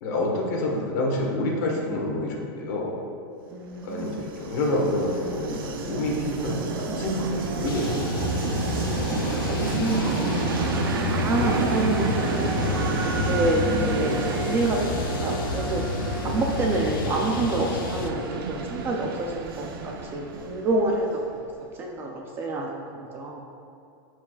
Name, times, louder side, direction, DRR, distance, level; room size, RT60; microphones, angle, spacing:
voice 1, 0.0-3.0 3.8-8.5 11.3-11.7, left 1 dB, 50° left, -1 dB, 1.4 m, -28 dB
voice 2, 3.5-4.2 9.0-10.1 10.6-12.5 13.3-15.8 16.2-21.2 21.7-23.4, right 2 dB, 20° right, 0 dB, 0.4 m, -28 dB
Train, 3.7-21.5, right 4 dB, 75° right, 0.7 m, -30 dB
sound 1, 7.7-18.1, left 6 dB, 70° left, 0.6 m, -30 dB
12.0 x 4.7 x 2.4 m, 2.5 s
supercardioid pair, 170°, 12 cm